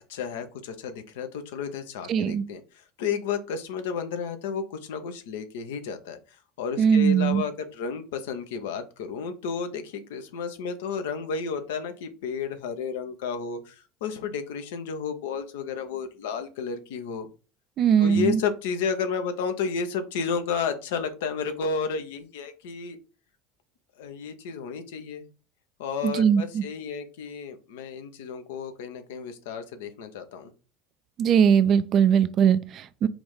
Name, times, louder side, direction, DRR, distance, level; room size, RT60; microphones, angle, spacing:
voice 1, 0.0-6.2 6.6-17.3 18.0-23.0 24.0-25.3 25.8-30.5, left 6 dB, 65° left, 0.7 m, -32 dB
voice 2, 2.1-2.4 6.8-7.4 17.8-18.4 26.0-26.6 31.2-33.1, right 7 dB, 45° right, 0.4 m, -20 dB
4.9 x 2.5 x 3.6 m
figure-of-eight pair, 70°, 0 cm